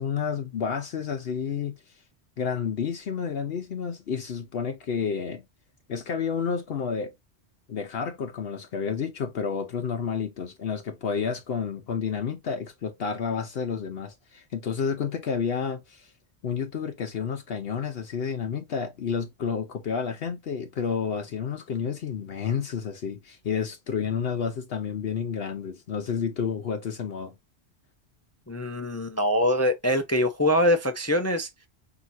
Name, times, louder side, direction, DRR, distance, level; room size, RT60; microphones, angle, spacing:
voice 1, 0.0-2.0 2.4-5.4 5.9-7.1 7.7-16.1 16.4-27.3, left 6 dB, 65° left, 0.9 m, -30 dB
voice 2, 28.5-31.5, left 1 dB, 20° left, 0.5 m, -23 dB
5.9 x 2.7 x 2.6 m
omnidirectional pair, 1.1 m